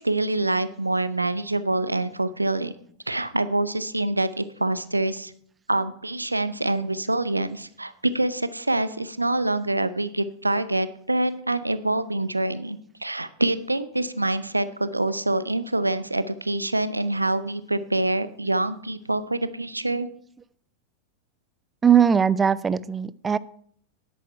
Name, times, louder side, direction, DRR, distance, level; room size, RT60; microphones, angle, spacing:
voice 1, 0.0-2.7 3.1-5.3 5.7-20.1, right 2 dB, 85° right, 14 dB, 0.5 m, -26 dB
voice 2, 21.8-23.4, right 8 dB, 15° right, 19 dB, 0.4 m, -20 dB
10.5 x 8.4 x 4.6 m, 0.62 s
figure-of-eight pair, 90°, 0 cm